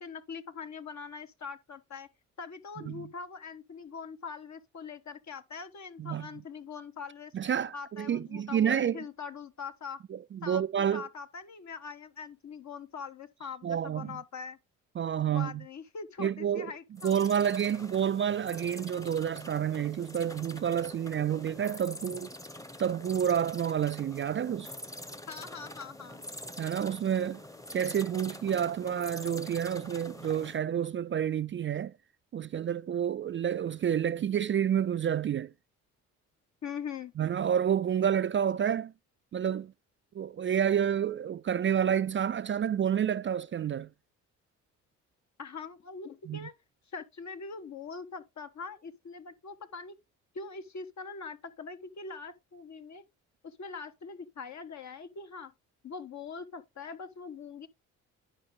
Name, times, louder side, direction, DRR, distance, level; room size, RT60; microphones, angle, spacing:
voice 1, 0.0-2.1 2.4-7.3 7.7-10.0 10.4-14.6 15.3-17.2 25.3-26.2 36.6-37.1 45.4-46.5 46.9-50.0 50.3-53.0 53.4-55.5 55.8-57.7, left 5 dB, 50° left, 1.4 m, -42 dB
voice 2, 7.3-9.0 10.1-11.1 13.6-14.2 15.0-15.6 16.2-16.7 17.0-22.3 22.8-24.7 26.6-27.4 27.7-31.9 32.3-35.5 37.2-38.9 39.3-39.7 40.1-43.9 46.3-46.5, right 9 dB, 35° right, 0.4 m, -29 dB
sound 1, 17.0-30.6, left 1 dB, 10° left, 1.0 m, -45 dB
10.0 x 5.0 x 3.7 m
hypercardioid pair, 55°, 36 cm